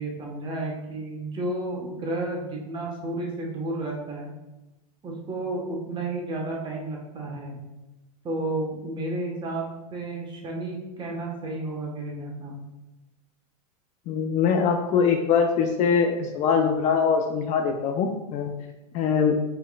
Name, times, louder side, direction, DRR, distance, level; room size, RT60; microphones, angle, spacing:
voice 1, 0.0-4.3 5.0-7.6 8.2-12.5, right 2 dB, 25° right, -1 dB, 1.1 m, -32 dB
voice 2, 14.1-18.5 18.9-19.3, left 6 dB, 35° left, 4 dB, 0.4 m, -23 dB
4.5 x 3.6 x 2.3 m, 0.99 s
hypercardioid pair, 110°, 20 cm